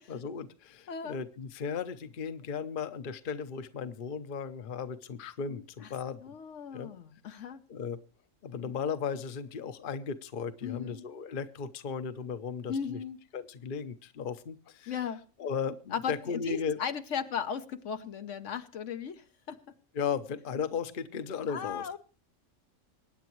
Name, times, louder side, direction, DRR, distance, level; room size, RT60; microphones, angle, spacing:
voice 1, 0.0-6.4 6.7-6.9 7.3-8.0 8.4-13.0 13.3-15.0 15.4-16.8 19.9-22.0, left 6 dB, 45° left, 11 dB, 0.9 m, -36 dB
voice 2, 0.9-1.2 5.8-5.9 6.2-7.6 10.6-11.0 12.7-13.2 14.9-15.3 15.9-19.6 21.5-22.0, left 7 dB, 70° left, 9 dB, 1.1 m, -36 dB
24.5 x 9.5 x 3.1 m, 0.37 s
omnidirectional pair, 1.4 m